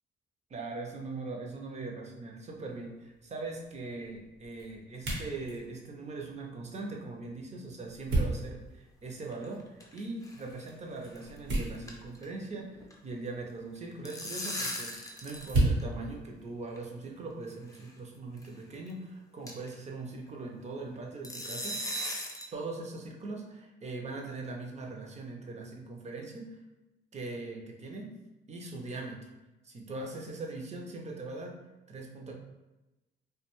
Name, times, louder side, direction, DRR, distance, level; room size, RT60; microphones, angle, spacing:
voice 1, 0.5-21.8 22.5-26.6 27.1-28.1 28.5-29.3 29.6-31.6 31.9-32.3, right 3 dB, 35° right, 1 dB, 0.5 m, -41 dB
sound 1, 2.5-17.4, right 2 dB, 80° right, 1.0 m, -37 dB
sound 2, 9.2-10.0 10.2-10.4 10.7-10.8 11.2-11.4 11.6-12.9 13.8-15.5 15.8-15.9 16.8-16.9 17.7-17.9 18.4-18.5 18.9-19.0 19.5-19.7 21.2-22.5, equal, 15° left, 0.5 m, -38 dB
2.3 x 2.2 x 2.9 m, 1.0 s
cardioid pair, 90°, 20 cm